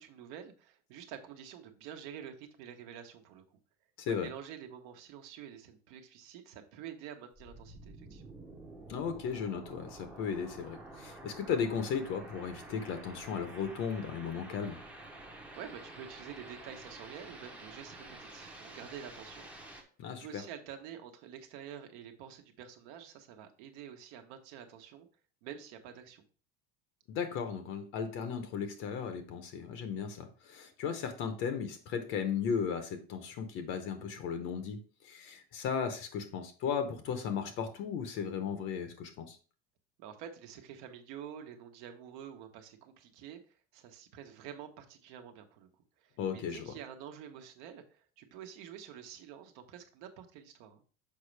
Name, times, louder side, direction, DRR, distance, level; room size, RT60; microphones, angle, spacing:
voice 1, 0.0-3.6 4.1-8.3 15.3-19.5 20.2-25.1 25.4-26.2 40.0-45.7 46.0-50.8, right 9 dB, 60° right, 6 dB, 1.1 m, -48 dB
voice 2, 4.0-4.3 8.9-14.8 20.0-20.4 27.1-39.4 46.2-46.7, left 6 dB, 40° left, 8 dB, 0.7 m, -36 dB
sound 1, 7.4-19.8, right 2 dB, 5° right, 0.7 m, -49 dB
6.5 x 5.1 x 3.2 m, 0.38 s
cardioid pair, 170°, 31 cm